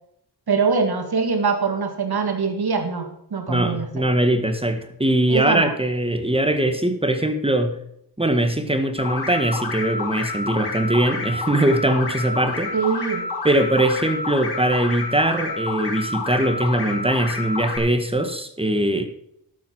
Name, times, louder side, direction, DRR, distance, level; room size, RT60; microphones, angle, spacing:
voice 1, 0.5-4.1 5.3-5.7 12.7-13.2, right 5 dB, 70° right, 5 dB, 2.2 m, -23 dB
voice 2, 3.5-7.8 8.2-12.7 13.4-19.1, right 1 dB, 15° right, 8 dB, 1.6 m, -21 dB
sound 1, 9.0-17.8, left 3 dB, 75° left, 3.1 m, -29 dB
12.0 x 7.9 x 6.0 m, 0.74 s
wide cardioid pair, 80°, 39 cm